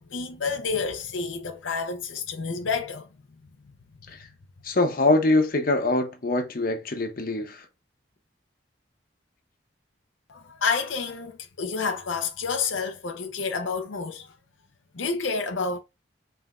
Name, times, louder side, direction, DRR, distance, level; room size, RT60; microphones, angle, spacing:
voice 1, 0.0-3.1 10.3-14.3 14.9-15.8, left 5 dB, 90° left, 0.7 m, -29 dB
voice 2, 4.6-7.7, left 2 dB, 50° left, 0.9 m, -23 dB
5.3 x 3.4 x 2.5 m
head